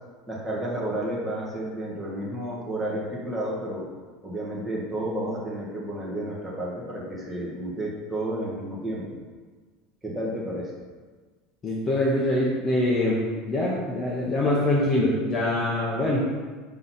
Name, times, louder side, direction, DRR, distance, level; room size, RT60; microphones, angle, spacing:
voice 1, 0.3-3.9 4.2-9.1 10.0-10.7, right 1 dB, 5° right, -6 dB, 1.3 m, -31 dB
voice 2, 11.6-16.3, left 1 dB, 20° left, -4 dB, 0.8 m, -24 dB
6.0 x 3.9 x 5.6 m, 1.4 s
supercardioid pair, 175°, 0 cm